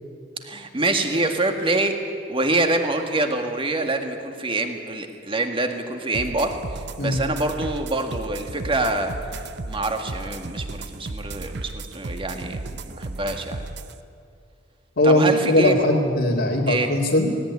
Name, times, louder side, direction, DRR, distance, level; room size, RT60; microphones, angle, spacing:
voice 1, 0.4-9.1 9.7-13.7 15.0-15.8 16.7-16.9, right 2 dB, 30° right, 5 dB, 1.9 m, -25 dB
sound 1, 6.1-13.9, right 2 dB, 60° right, 0.8 m, -34 dB
voice 2, 15.0-17.4, left 1 dB, 65° left, -5 dB, 2.4 m, -20 dB
19.0 x 18.0 x 9.7 m, 2.5 s
head